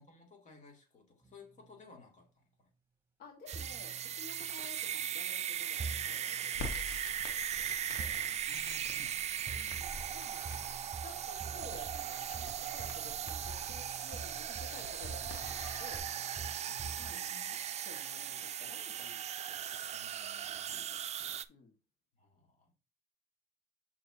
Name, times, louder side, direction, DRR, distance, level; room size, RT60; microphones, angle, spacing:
voice 1, 0.0-2.7 8.4-9.4 16.7-17.5 19.9-20.8 22.2-22.7, left 3 dB, 45° left, 2.4 m, -58 dB
sound 1, 1.2-1.8 3.5-4.9 5.8-6.7 8.0-8.8 9.5-17.1, right 3 dB, 15° right, 3.0 m, -47 dB
voice 2, 3.2-6.9 7.2-8.3 9.5-10.5 11.0-16.1 17.0-17.2 17.5-19.2 20.6-21.0 21.5-21.7, left 4 dB, 65° left, 1.6 m, -54 dB
sound 2, 3.5-21.5, right 10 dB, 40° right, 0.4 m, -38 dB
Crackle, 6.5-16.0, left 3 dB, 85° left, 1.5 m, -49 dB
7.1 x 5.7 x 2.8 m
cardioid pair, 110°, 17 cm